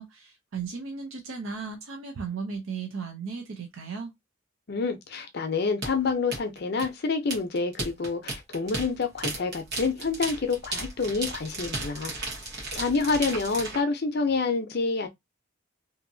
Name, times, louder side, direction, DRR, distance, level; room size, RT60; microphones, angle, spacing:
voice 1, 0.0-4.1, right 5 dB, 80° right, 0.6 m, -36 dB
voice 2, 4.7-12.1 12.7-15.1, left 4 dB, 50° left, 0.5 m, -28 dB
sound 1, 5.8-13.8, right 2 dB, 55° right, 1.2 m, -35 dB
2.8 x 2.6 x 2.6 m
head